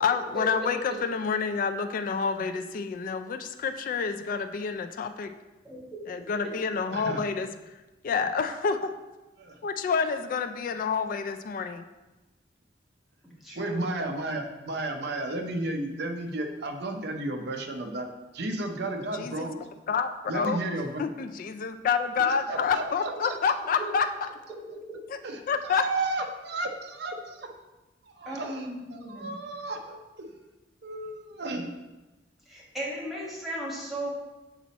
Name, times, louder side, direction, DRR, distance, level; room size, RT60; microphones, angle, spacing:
voice 1, 0.0-5.3 6.1-7.5 8.0-8.9 9.6-11.9 19.1-19.5 19.9-20.1 20.3-20.6 21.0-24.1 25.1-25.2 25.5-25.8, left 5 dB, 50° left, 7 dB, 0.3 m, -28 dB
voice 2, 6.9-7.2 9.4-9.6 13.5-18.1 18.3-19.6 20.3-21.0 22.5-23.3 25.2-27.5 28.0-28.7 29.1-30.3 30.8-31.7, right 2 dB, 65° right, 4 dB, 0.7 m, -33 dB
voice 3, 13.4-13.9 28.2-29.4 32.5-34.1, right 1 dB, ahead, -6 dB, 1.4 m, -36 dB
6.1 x 4.1 x 4.1 m, 1.1 s
head